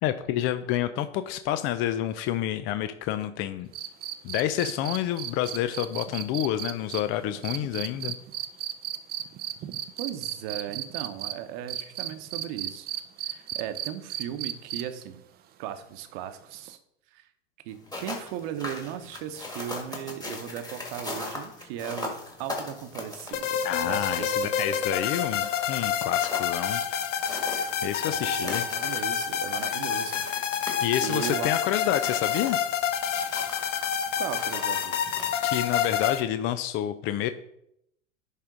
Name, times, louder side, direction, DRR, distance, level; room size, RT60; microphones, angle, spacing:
voice 1, 0.0-3.7 4.2-8.1 23.6-26.8 27.8-28.6 30.8-32.6 35.4-37.3, left 12 dB, 35° left, 11 dB, 0.4 m, -28 dB
sound 1, 3.7-11.3 11.7-15.0 16.7-16.8, right 11 dB, 25° right, 0.5 m, -34 dB
voice 2, 10.0-12.9 13.2-15.2 15.6-16.8 17.1-17.3 17.6-22.1 22.4-24.5 28.1-30.2 31.0-31.5 34.2-35.1, right 10 dB, 55° right, 9 dB, 1.0 m, -37 dB
sound 2, 17.7-36.0, left 2 dB, 10° left, 1.8 m, -40 dB
sound 3, 23.3-36.2, left 8 dB, 80° left, 0.9 m, -28 dB
10.5 x 3.6 x 3.8 m, 0.75 s
hypercardioid pair, 105°, 37 cm